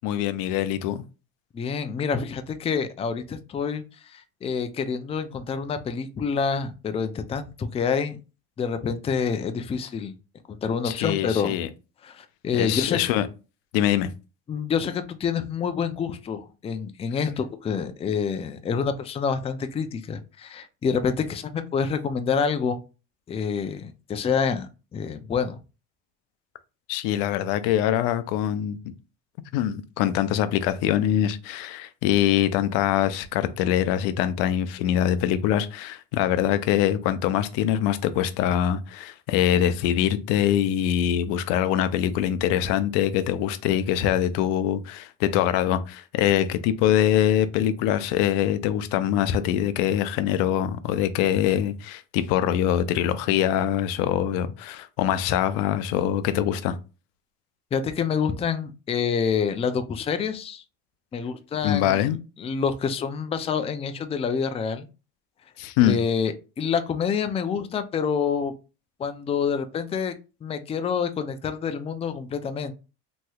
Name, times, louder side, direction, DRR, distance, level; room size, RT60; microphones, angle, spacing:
voice 1, 0.0-1.0 10.8-11.7 12.5-13.3 13.7-14.1 26.9-28.8 29.5-56.8 61.6-62.2 65.6-66.0, left 11 dB, 70° left, 0.6 m, -23 dB
voice 2, 1.5-8.2 8.6-10.1 10.5-11.5 12.0-13.0 14.5-22.8 23.3-25.6 57.7-60.6 61.1-64.9 65.8-68.5 69.0-70.1 70.4-72.7, left 6 dB, 20° left, 0.4 m, -27 dB
3.1 x 2.8 x 2.3 m
supercardioid pair, 95°, 34 cm